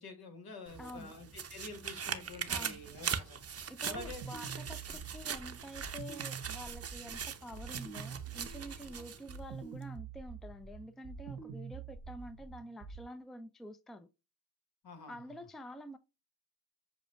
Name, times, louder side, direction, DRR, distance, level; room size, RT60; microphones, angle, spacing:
voice 1, 0.0-3.4 3.8-4.2 4.9-5.0 9.0-9.1 14.8-15.3, left 3 dB, 70° left, 1.6 m, -48 dB
sound 1, 0.7-9.4 9.8-9.9, right 7 dB, 40° right, 0.7 m, -41 dB
voice 2, 0.8-1.1 2.5-2.8 3.7-14.1 15.1-16.0, equal, ahead, 0.4 m, -48 dB
sound 2, 4.0-13.0, right 6 dB, 80° right, 1.0 m, -46 dB
6.9 x 2.4 x 2.3 m
cardioid pair, 60°, 38 cm